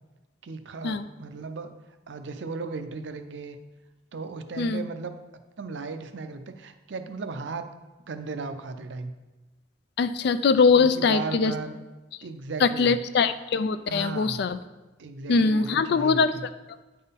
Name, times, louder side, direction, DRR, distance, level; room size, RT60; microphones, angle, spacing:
voice 1, 0.4-1.8 2.1-3.6 4.1-5.1 5.6-7.7 8.1-9.1 10.7-11.8 12.2-13.0 13.9-14.4 15.0-16.4, right 4 dB, 65° right, 9 dB, 0.5 m, -36 dB
voice 2, 10.0-11.5 12.6-14.6 15.3-16.3, left 5 dB, 55° left, 13 dB, 0.3 m, -22 dB
9.6 x 3.8 x 4.0 m, 1.1 s
head